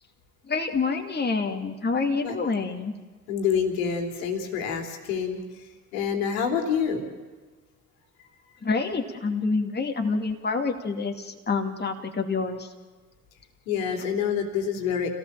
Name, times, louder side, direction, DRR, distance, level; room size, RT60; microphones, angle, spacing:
voice 1, 0.5-2.9 8.6-12.7, left 4 dB, 25° left, 3 dB, 2.5 m, -27 dB
voice 2, 3.3-5.4 5.9-7.0 13.7-15.1, left 7 dB, 70° left, 3 dB, 3.4 m, -27 dB
29.0 x 17.5 x 7.5 m, 1.3 s
figure-of-eight pair, 50°, 43 cm